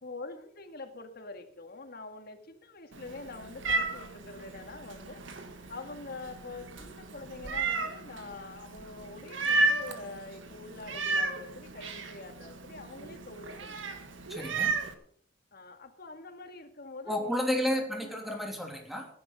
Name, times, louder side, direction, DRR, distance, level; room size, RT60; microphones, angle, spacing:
voice 1, 0.0-5.2 5.7-13.8 15.5-18.2, left 3 dB, 55° left, 6 dB, 2.0 m, -45 dB
Meow, 2.9-14.9, right 3 dB, 90° right, 1.8 m, -34 dB
voice 2, 14.3-14.7 17.1-19.1, left 1 dB, ahead, 2 dB, 3.0 m, -31 dB
16.5 x 10.0 x 5.5 m, 0.62 s
head